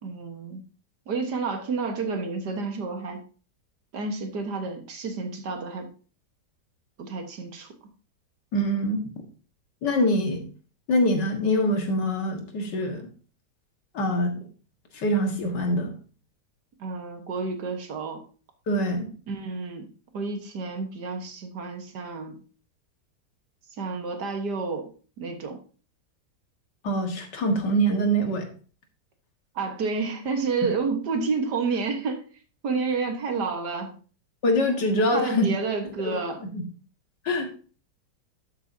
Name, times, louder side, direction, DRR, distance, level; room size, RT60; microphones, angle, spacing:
voice 1, 0.0-0.6 1.1-3.2 3.9-5.9 7.0-7.7 16.8-18.2 19.3-19.9 20.1-22.4 23.8-24.9 25.2-25.6 29.6-32.2 32.6-34.0 35.1-36.4, right 4 dB, 70° right, 5 dB, 2.0 m, -30 dB
voice 2, 8.5-9.0 9.8-10.5 10.9-13.1 13.9-14.5 14.9-15.9 18.7-19.1 26.8-28.5 34.4-35.5 36.0-36.2 36.5-36.6 37.3-37.5, equal, 85° left, 4 dB, 2.3 m, -24 dB
12.0 x 8.1 x 2.7 m, 0.38 s
omnidirectional pair, 1.8 m